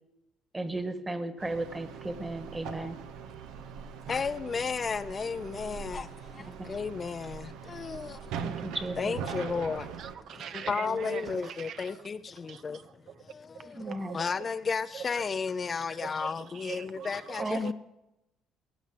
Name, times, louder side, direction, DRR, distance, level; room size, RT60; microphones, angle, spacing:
voice 1, 0.5-3.0 6.3-6.8 8.4-9.1 13.7-14.2 17.4-17.6, right 2 dB, 15° right, 1.5 m, -35 dB
sound 1, 1.4-10.2, right 7 dB, 85° right, 1.1 m, -41 dB
voice 2, 4.1-8.6 9.0-9.9 10.3-12.8 13.2-17.7, left 5 dB, 30° left, 0.5 m, -33 dB
voice 3, 9.7-11.9 12.4-13.3 13.5-14.5 14.9-15.3 15.9-17.7, right 8 dB, 60° right, 0.7 m, -43 dB
17.0 x 8.0 x 7.7 m
cardioid pair, 110°, 0 cm